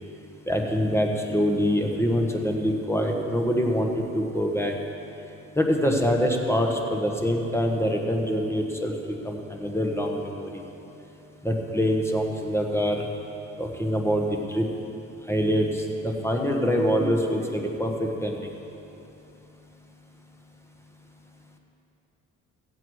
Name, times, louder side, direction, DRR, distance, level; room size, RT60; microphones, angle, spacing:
voice 1, 0.5-4.7 5.5-8.9 9.2-10.6 11.4-13.1 13.6-14.7 15.3-18.5, equal, 10° left, 2 dB, 1.3 m, -25 dB
15.5 x 8.0 x 4.7 m, 3.0 s
cardioid pair, 90°, 30 cm